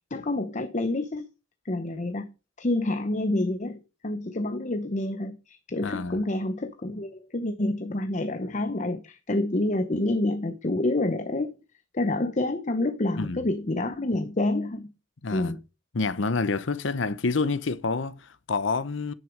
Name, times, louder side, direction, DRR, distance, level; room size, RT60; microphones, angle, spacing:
voice 1, 0.1-1.3 1.6-2.3 2.6-11.5 11.9-14.9 15.3-15.6, left 2 dB, 40° left, 0.8 m, -28 dB
voice 2, 5.8-6.2 13.2-13.5 15.2-15.6 15.9-19.1, left 4 dB, 75° left, 0.8 m, -28 dB
10.5 x 6.4 x 5.1 m
head